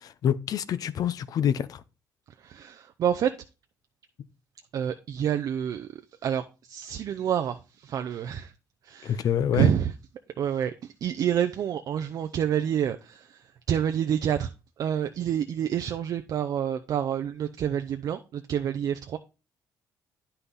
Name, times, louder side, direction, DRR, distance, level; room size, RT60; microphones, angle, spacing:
voice 1, 0.0-1.8 9.0-9.7, left 9 dB, 60° left, 0.6 m, -26 dB
voice 2, 2.4-3.3 4.7-8.5 8.8-9.3 9.5-9.9 10.4-14.5 14.8-19.2, right 9 dB, 60° right, 0.5 m, -28 dB
9.6 x 5.7 x 4.0 m
cardioid pair, 110°, 7 cm